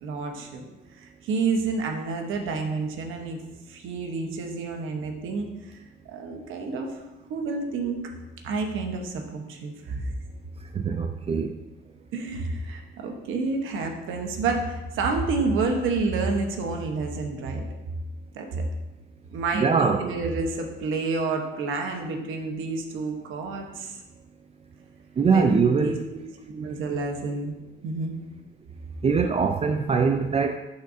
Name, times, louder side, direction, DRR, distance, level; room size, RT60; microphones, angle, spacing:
voice 1, 0.0-0.7 1.0-3.4 3.7-5.8 6.0-6.9 7.3-8.0 8.4-10.1 12.1-17.6 18.3-18.6 19.3-24.0 25.3-27.5 27.8-28.2, right 3 dB, 85° right, 3 dB, 1.0 m, -29 dB
voice 2, 10.7-11.5 19.5-20.0 25.2-26.0 29.0-30.6, right 5 dB, 30° right, 6 dB, 0.4 m, -22 dB
11.0 x 4.2 x 2.6 m, 1.0 s
cardioid pair, 90°, 20 cm